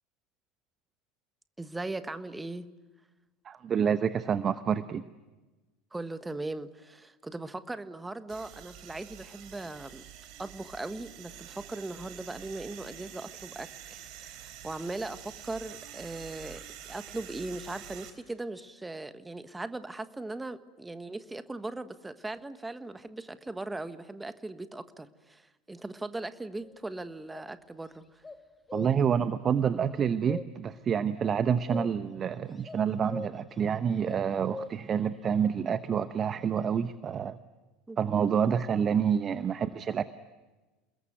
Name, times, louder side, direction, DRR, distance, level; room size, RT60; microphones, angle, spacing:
voice 1, 1.6-2.7 5.9-10.0 10.4-28.2 37.9-38.0 38.3-38.6, right 2 dB, 10° right, 12 dB, 1.4 m, -39 dB
voice 2, 3.4-5.0 28.7-37.4 38.0-40.0, right 7 dB, 35° right, 13 dB, 0.9 m, -28 dB
sound 1, 8.3-18.1, right 10 dB, 55° right, 3.7 m, -47 dB
sound 2, 26.6-26.8 27.3-27.4 28.2-29.2 29.8-30.8 31.2-32.2 32.6-33.6 34.1-35.0, left 3 dB, 15° left, 1.9 m, -42 dB
29.0 x 21.5 x 9.4 m, 1.2 s
figure-of-eight pair, 75°, 0 cm